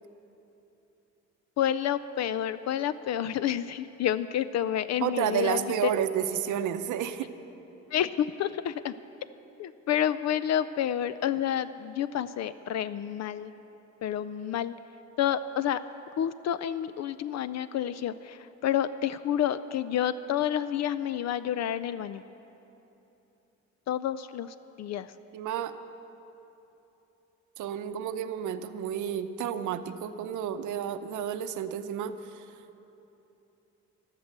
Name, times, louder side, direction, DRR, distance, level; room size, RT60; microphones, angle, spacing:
voice 1, 1.6-5.9 7.9-8.9 9.6-13.5 14.0-14.7 15.2-15.8 16.2-22.2 23.9-25.1, left 10 dB, 60° left, 14 dB, 0.4 m, -29 dB
voice 2, 5.0-7.3 25.3-25.7 27.6-32.4, right 9 dB, 80° right, 11 dB, 0.7 m, -31 dB
13.0 x 12.5 x 6.6 m, 3.0 s
cardioid pair, 90°, 30 cm